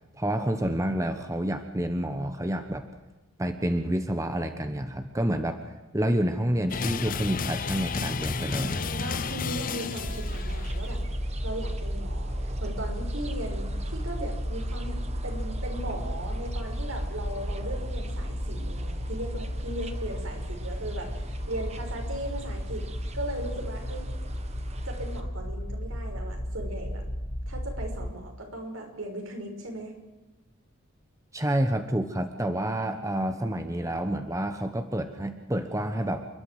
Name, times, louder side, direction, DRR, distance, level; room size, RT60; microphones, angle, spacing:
voice 1, 0.2-2.9 3.4-5.6 5.9-8.9 31.3-36.2, right 1 dB, 15° right, 7 dB, 1.2 m, -28 dB
sound 1, 6.7-10.9, left 4 dB, 40° left, 0.7 m, -32 dB
sound 2, 8.2-25.2, right 2 dB, 30° right, 1.6 m, -45 dB
voice 2, 8.4-22.9 23.1-24.1 24.8-27.0 27.5-29.9, right 1 dB, 75° right, 3 dB, 5.8 m, -38 dB
sound 3, 10.0-28.1, equal, 70° left, 6.4 m, -33 dB
29.0 x 12.5 x 7.8 m, 1.1 s
head